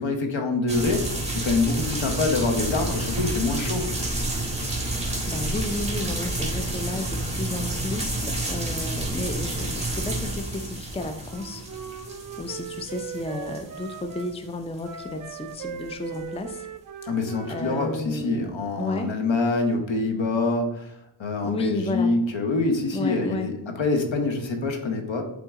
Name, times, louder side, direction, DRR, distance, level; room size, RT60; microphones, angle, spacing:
voice 1, 0.0-3.9 17.0-20.9 21.2-25.2, left 3 dB, 70° left, 5 dB, 1.1 m, -25 dB
sound 1, 0.7-14.4 14.8-14.9 15.5-15.9 16.1-16.2, right 2 dB, 15° right, 1.7 m, -30 dB
voice 2, 5.3-11.6 12.4-16.7 17.4-19.1 21.4-22.1 22.9-23.5, left 2 dB, 15° left, 7 dB, 0.5 m, -32 dB
Wind instrument woodwind instrument, 11.2-14.3 14.8-18.1, right 7 dB, 40° right, 0.5 m, -39 dB
7.9 x 3.8 x 3.7 m, 0.85 s
wide cardioid pair, 75°, 47 cm